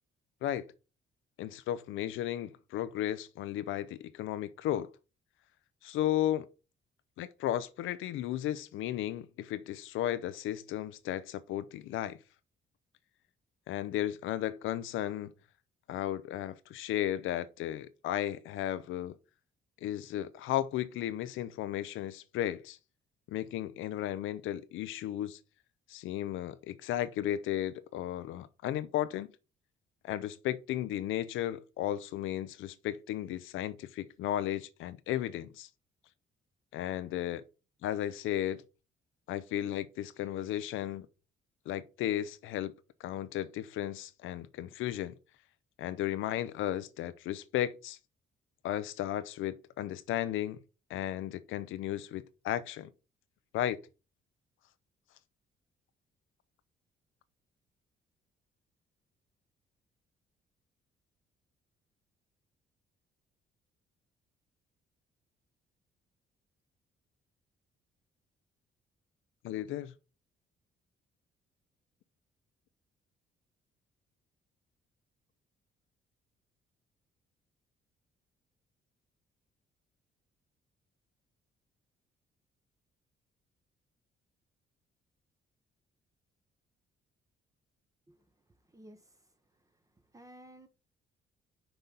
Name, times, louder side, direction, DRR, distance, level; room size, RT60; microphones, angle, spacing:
voice 1, 1.4-4.9 5.8-6.5 7.2-12.2 13.7-15.3 15.9-19.2 19.8-22.8 23.3-25.4 25.9-29.3 30.0-35.7 36.7-37.4 37.8-38.6 39.3-41.1 41.7-42.7 43.0-45.2 45.8-48.0 48.6-50.6 50.9-52.9 53.5-53.8 69.4-69.9, left 12 dB, 85° left, 0.5 m, -34 dB
voice 2, 88.7-89.2 90.1-90.7, right 1 dB, 15° right, 1.0 m, -53 dB
6.0 x 3.9 x 5.3 m
cardioid pair, 90°, 20 cm